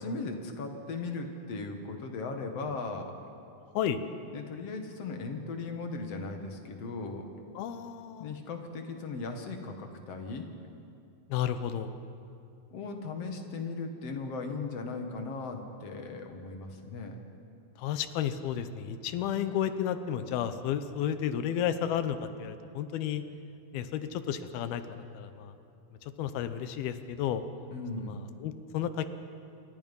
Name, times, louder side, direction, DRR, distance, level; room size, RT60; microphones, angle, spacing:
voice 1, 0.0-3.1 4.3-7.3 8.2-10.5 12.7-17.2 27.7-28.2, left 3 dB, 50° left, 4 dB, 2.4 m, -37 dB
voice 2, 7.5-8.4 11.3-12.0 17.8-23.2 23.7-25.5 26.0-27.4 28.0-29.1, left 9 dB, 80° left, 11 dB, 2.8 m, -32 dB
28.0 x 24.0 x 5.5 m, 2.6 s
omnidirectional pair, 4.4 m